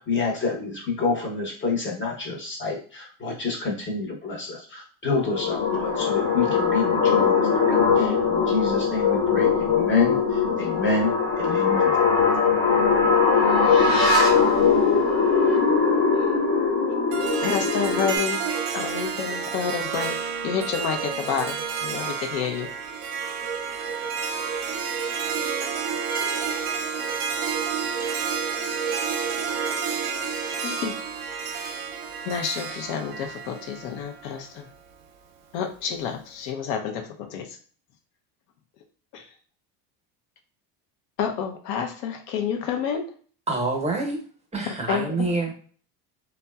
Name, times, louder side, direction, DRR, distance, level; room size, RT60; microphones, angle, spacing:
voice 1, 0.0-12.0, left 3 dB, 25° left, -1 dB, 0.8 m, -28 dB
sound 1, 5.1-18.2, left 5 dB, 65° left, 1.1 m, -21 dB
Harp, 17.1-34.4, right 6 dB, 50° right, 0.6 m, -30 dB
voice 2, 17.4-18.4 18.7-22.7 30.6-31.0 32.2-34.7 35.5-37.6 39.1-39.3 41.2-43.1 44.9-45.2, left 7 dB, 85° left, 5 dB, 0.7 m, -29 dB
voice 3, 43.5-44.2 44.5-45.5, right 3 dB, 15° right, 0 dB, 0.7 m, -26 dB
2.7 x 2.2 x 2.2 m, 0.43 s
supercardioid pair, 110°, 47 cm